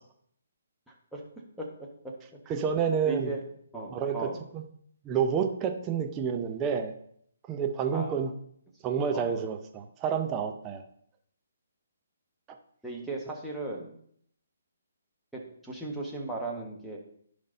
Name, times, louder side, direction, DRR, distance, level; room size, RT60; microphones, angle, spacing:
voice 1, 0.9-1.2 1.6-1.9 2.4-2.5 3.1-3.4 3.7-4.4 7.9-8.2 9.1-9.3 12.8-14.0 15.3-17.0, right 3 dB, ahead, -4 dB, 1.4 m, -37 dB
voice 2, 2.5-3.3 3.9-4.6 5.0-6.9 7.5-8.3 8.8-10.8, right 7 dB, 20° right, 4 dB, 0.7 m, -29 dB
15.5 x 5.2 x 2.7 m, 0.66 s
figure-of-eight pair, 135°, 0 cm